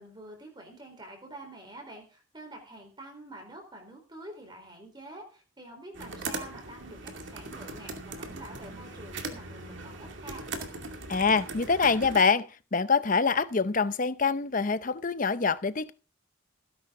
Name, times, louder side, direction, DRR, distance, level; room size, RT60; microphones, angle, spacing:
voice 1, 0.0-10.5, right 1 dB, 20° right, 4.0 m, -47 dB
sound 1, 5.9-12.2, right 3 dB, 60° right, 2.4 m, -39 dB
voice 2, 11.1-15.9, left 5 dB, 40° left, 0.6 m, -25 dB
17.5 x 10.5 x 3.8 m
head